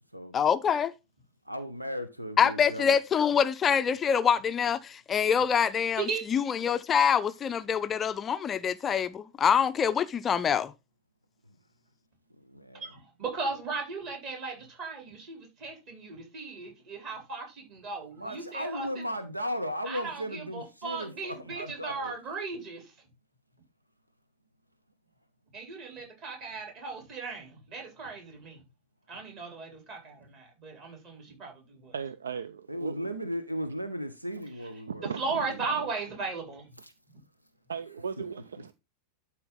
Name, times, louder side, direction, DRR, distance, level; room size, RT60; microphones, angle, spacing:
voice 1, 0.3-0.9 2.4-6.0 6.3-10.7, left 7 dB, 25° left, 0.4 m, -25 dB
voice 2, 1.4-2.9 12.4-12.8 18.2-22.1 32.7-35.9 36.8-36.9, equal, 85° right, 0.8 m, -36 dB
voice 3, 13.2-18.9 19.8-22.9 25.5-28.6 29.1-32.0 35.0-36.7, right 4 dB, 40° right, 3.9 m, -37 dB
voice 4, 31.9-33.1 34.9-35.4 37.7-38.7, right 6 dB, 70° right, 0.4 m, -37 dB
12.0 x 4.4 x 3.9 m
figure-of-eight pair, 90°, 0 cm